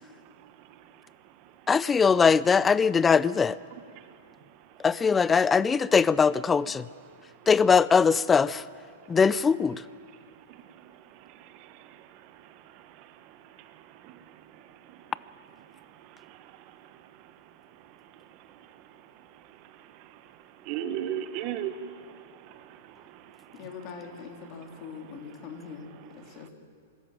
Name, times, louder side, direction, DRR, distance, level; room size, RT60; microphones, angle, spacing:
voice 1, 1.7-3.6 4.8-6.8 7.5-8.6 9.1-9.8, left 5 dB, 15° left, 0.5 m, -21 dB
voice 2, 20.6-22.2 22.5-22.6 23.1-23.2, right 10 dB, 45° right, 1.2 m, -34 dB
voice 3, 23.5-26.5, left 6 dB, 45° left, 3.3 m, -42 dB
22.5 x 14.0 x 9.1 m
hypercardioid pair, 125°, 0 cm